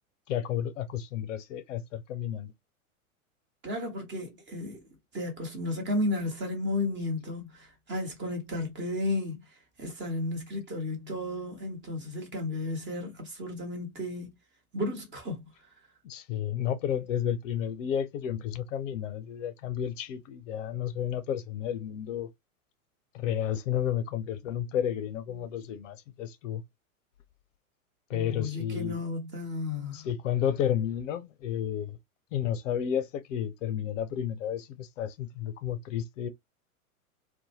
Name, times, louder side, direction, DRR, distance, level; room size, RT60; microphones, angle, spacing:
voice 1, 0.3-2.5 16.0-22.3 23.1-26.6 28.1-29.0 29.9-32.0 32.3-36.3, left 9 dB, 55° left, 0.6 m, -32 dB
voice 2, 3.6-4.9 5.1-14.4 14.7-15.5 28.1-30.1, left 2 dB, 25° right, 1.2 m, -33 dB
2.6 x 2.2 x 2.9 m
hypercardioid pair, 105°, 44 cm